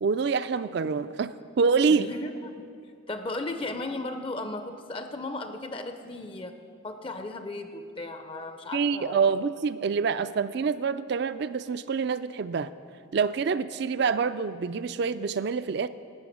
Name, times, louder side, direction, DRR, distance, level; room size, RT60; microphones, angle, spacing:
voice 1, 0.0-2.1 8.7-12.7 13.1-15.9, right 5 dB, 55° right, 14 dB, 0.3 m, -26 dB
voice 2, 1.9-2.7 3.1-6.6 6.8-9.3, left 2 dB, 25° left, 8 dB, 0.5 m, -36 dB
11.0 x 6.3 x 8.6 m, 2.4 s
head